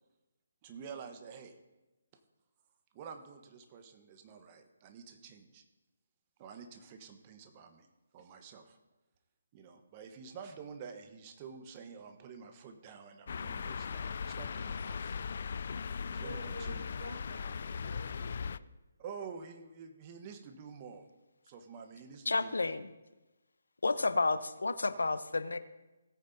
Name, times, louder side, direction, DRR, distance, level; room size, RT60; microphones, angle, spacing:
voice 1, 0.6-1.5 2.9-5.6 6.4-7.9 8.1-8.8 9.5-15.2 16.1-16.9 19.0-21.1 21.4-22.5, right 6 dB, 30° right, 6 dB, 1.2 m, -49 dB
sound 1, 13.3-18.6, left 6 dB, 50° left, 0.4 m, -38 dB
voice 2, 16.2-18.6, right 1 dB, 50° right, -2 dB, 3.9 m, -48 dB
voice 3, 22.3-22.9 23.8-25.6, left 3 dB, 75° left, 12 dB, 0.8 m, -31 dB
18.5 x 8.9 x 2.8 m, 1.1 s
figure-of-eight pair, 145°, 0 cm